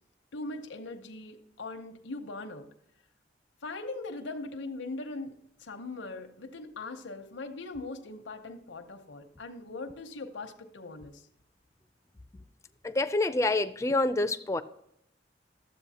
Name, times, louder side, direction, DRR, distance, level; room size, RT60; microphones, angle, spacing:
voice 1, 0.3-2.7 3.6-11.3, left 2 dB, 90° left, 0.8 m, -40 dB
voice 2, 12.8-14.6, left 2 dB, 15° left, 0.4 m, -27 dB
12.5 x 7.7 x 2.8 m
head